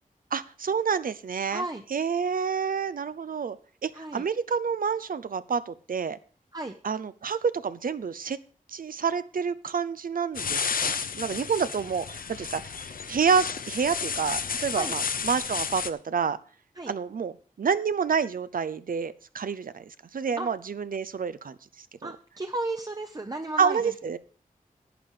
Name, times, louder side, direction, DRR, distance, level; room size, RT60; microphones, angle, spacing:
voice 1, 0.3-1.6 1.9-3.6 3.8-6.2 6.8-8.4 8.7-16.4 16.9-21.6 22.0-22.1 23.6-24.2, right 6 dB, 75° right, 14 dB, 0.7 m, -28 dB
voice 2, 1.5-1.8 3.9-4.2 6.5-6.7 14.7-14.9 16.8-16.9 20.4-20.5 22.0-23.9, right 2 dB, 25° right, 6 dB, 0.8 m, -34 dB
sound 1, 10.3-15.9, left 6 dB, 80° left, 0.7 m, -32 dB
11.0 x 8.8 x 4.9 m, 0.40 s
wide cardioid pair, 85°, 15 cm